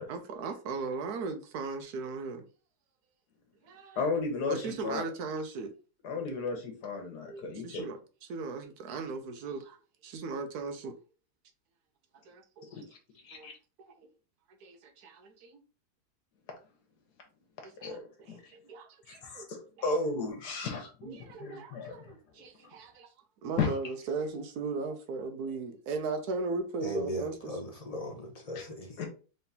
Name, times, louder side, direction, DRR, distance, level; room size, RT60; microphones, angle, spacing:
voice 1, 0.1-2.5 3.6-4.0 4.5-5.7 7.3-8.0 8.3-9.8 10.0-10.9 12.3-12.8 13.3-13.5 13.9-14.0 14.6-15.6 17.6-19.5 21.0-23.1 23.4-27.5, right 4 dB, 70° right, 1.2 m, -37 dB
voice 2, 3.9-5.0 6.0-7.9 12.7-12.8 13.2-13.5 17.8-18.5 19.1-22.1 23.6-23.7 28.5-28.7 29.0-29.1, left 4 dB, 75° left, 1.7 m, -34 dB
voice 3, 26.8-28.9, left 1 dB, 30° left, 0.7 m, -37 dB
3.9 x 3.6 x 2.8 m
omnidirectional pair, 1.8 m